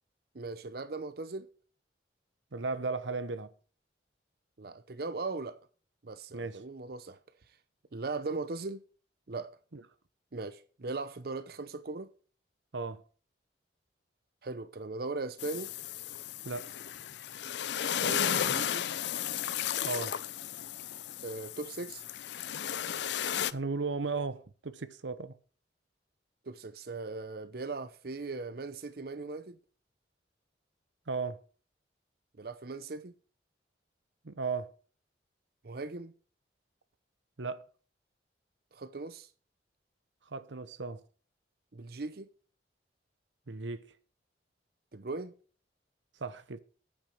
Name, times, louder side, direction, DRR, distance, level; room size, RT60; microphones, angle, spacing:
voice 1, 0.3-1.5 4.6-5.6 6.0-7.2 7.9-8.8 9.3-9.6 10.3-12.1 14.4-15.7 18.0-18.9 21.2-22.0 26.4-29.6 32.4-33.1 35.6-36.1 38.7-39.3 41.7-42.3 44.9-45.3, right 3 dB, 55° right, 0.7 m, -39 dB
voice 2, 2.5-3.5 6.3-6.6 9.7-9.8 12.7-13.0 16.4-16.7 19.8-20.2 23.5-25.3 31.1-31.4 34.2-34.7 37.4-37.6 40.3-41.0 43.5-43.8 46.2-46.6, right 4 dB, 85° right, 0.9 m, -35 dB
sound 1, 15.4-23.5, left 9 dB, 70° left, 0.5 m, -34 dB
8.8 x 8.7 x 5.3 m
head